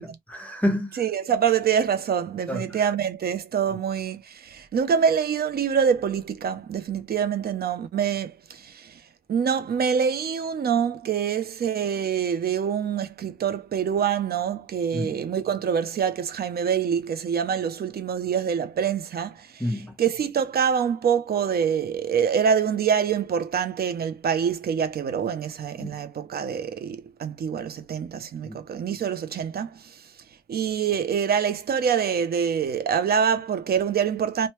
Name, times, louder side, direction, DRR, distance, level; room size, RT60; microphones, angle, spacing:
voice 1, 0.0-1.0 2.5-2.8 14.9-15.2 19.6-19.9 25.8-25.9 28.4-28.6, left 1 dB, 10° left, 0.9 m, -29 dB
voice 2, 1.0-8.9 9.3-19.6 20.0-29.8 30.5-34.5, right 7 dB, 80° right, 0.5 m, -25 dB
3.0 x 2.2 x 3.0 m
wide cardioid pair, 165°, 16 cm